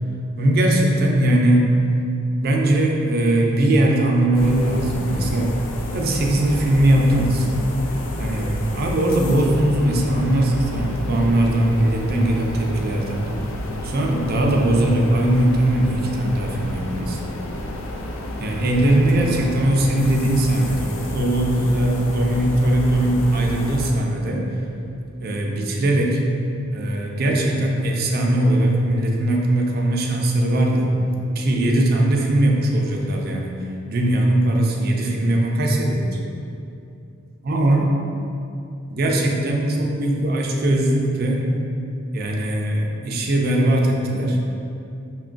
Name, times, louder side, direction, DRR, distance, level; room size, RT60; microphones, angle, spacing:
voice 1, 0.4-1.8 2.4-5.5 5.9-7.5 8.2-13.3 13.8-17.2 18.4-24.5 25.2-26.2 26.7-31.0 31.4-33.6 33.9-36.2 37.5-37.9 38.9-41.4 42.1-44.4, right 1 dB, 50° right, 0 dB, 0.4 m, -20 dB
sound 1, 4.3-23.9, left 1 dB, 75° left, 0.4 m, -30 dB
5.7 x 2.3 x 2.4 m, 2.6 s
head